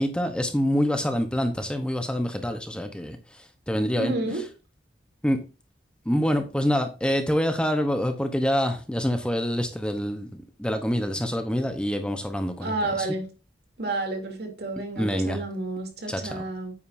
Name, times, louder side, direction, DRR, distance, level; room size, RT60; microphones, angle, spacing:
voice 1, 0.0-4.1 5.2-5.4 6.0-13.1 15.0-15.4 16.1-16.4, equal, 5° left, 0.9 m, -26 dB
voice 2, 4.0-4.4 12.6-13.3 13.8-16.7, right 2 dB, 65° right, 2.9 m, -30 dB
9.4 x 8.7 x 2.6 m
head